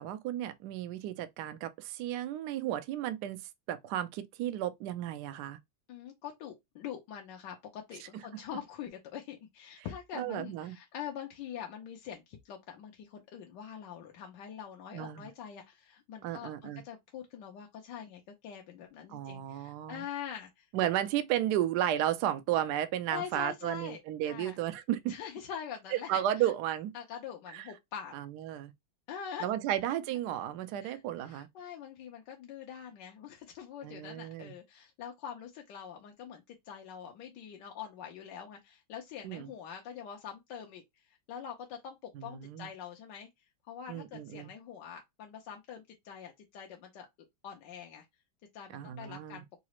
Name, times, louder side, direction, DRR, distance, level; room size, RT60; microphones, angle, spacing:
voice 1, 0.0-3.4 3.7-5.6 10.1-10.8 14.9-15.3 16.2-16.8 19.1-20.0 20.7-25.1 26.1-26.9 27.5-27.6 28.1-28.7 29.4-31.5 33.8-34.5 39.2-39.5 42.1-42.7 43.9-44.5 48.7-49.4, right 12 dB, 70° right, 1.0 m, -33 dB
voice 2, 5.9-20.7 23.1-24.0 24.3-24.6 25.1-26.1 26.4-26.5 26.9-28.1 29.1-29.5 30.8-40.8 41.3-43.3 43.7-47.1 47.4-48.0 48.5-49.4, left 8 dB, 70° left, 1.2 m, -44 dB
3.9 x 2.4 x 2.9 m
omnidirectional pair, 2.2 m